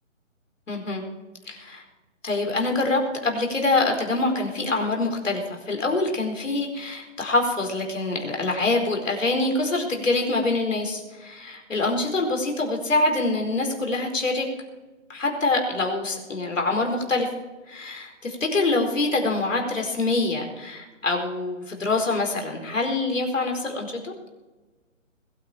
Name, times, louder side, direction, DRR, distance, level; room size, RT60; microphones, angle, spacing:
voice 1, 0.7-1.0 1.5-1.8 2.2-14.5 15.1-17.3 17.7-24.1, left 2 dB, 75° left, 2 dB, 4.7 m, -25 dB
21.0 x 9.3 x 5.0 m, 1.2 s
hypercardioid pair, 175°, 39 cm